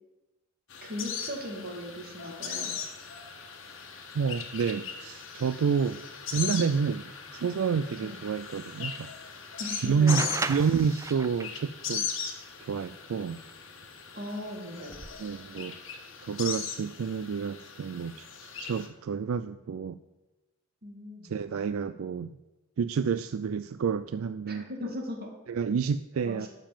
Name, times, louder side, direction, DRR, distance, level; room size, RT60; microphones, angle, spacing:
sound 1, 0.7-18.9, left 6 dB, 60° left, 1.5 m, -39 dB
voice 1, 0.8-2.8 7.9-8.2 9.6-10.4 14.1-15.0 20.8-21.3 24.5-25.3 26.2-26.5, left 1 dB, 45° right, 2 dB, 2.2 m, -38 dB
voice 2, 4.1-6.0 6.3-7.0 7.3-9.1 9.8-10.2 10.5-12.1 12.6-13.4 15.2-15.8 16.2-18.3 18.6-20.0 21.2-22.4 22.8-24.6 25.5-26.5, right 6 dB, 75° right, 12 dB, 0.4 m, -29 dB
sound 2, 10.1-11.6 13.5-13.6 14.8-15.1, right 3 dB, 15° right, 0.4 m, -34 dB
12.5 x 5.2 x 7.3 m, 1.1 s
head